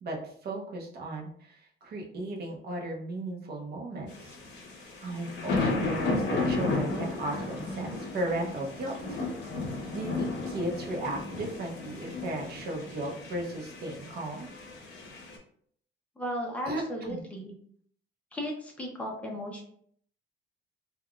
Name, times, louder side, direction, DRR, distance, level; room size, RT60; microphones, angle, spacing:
voice 1, 0.0-4.4 5.0-9.2 9.9-14.5 16.6-17.2, right 1 dB, 50° right, 0 dB, 0.7 m, -35 dB
sound 1, 4.1-15.4, left 3 dB, 60° left, 0.9 m, -34 dB
voice 2, 16.2-17.5 18.3-19.6, equal, 5° left, -1 dB, 0.6 m, -35 dB
3.5 x 2.2 x 2.3 m, 0.62 s
cardioid pair, 150°, 21 cm